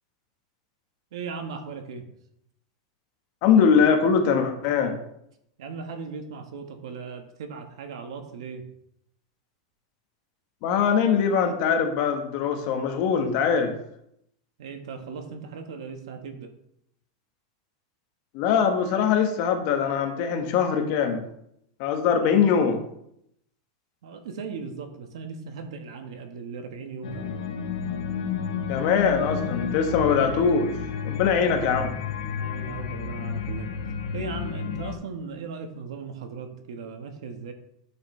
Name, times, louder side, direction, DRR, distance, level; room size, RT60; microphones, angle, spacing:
voice 1, 1.1-2.1 5.6-8.6 14.6-16.5 22.2-22.5 24.0-27.4 30.3-30.4 31.4-31.9 32.4-33.7 34.1-37.5, right 5 dB, 75° right, 6 dB, 1.4 m, -37 dB
voice 2, 3.4-5.0 10.6-13.7 18.3-21.2 21.8-22.8 28.7-30.7 31.0-31.9, left 6 dB, 40° left, 5 dB, 1.2 m, -22 dB
sound 1, 27.0-34.9, left 7 dB, 80° left, 1.2 m, -31 dB
11.0 x 6.3 x 3.2 m, 0.75 s
supercardioid pair, 175°, 3 cm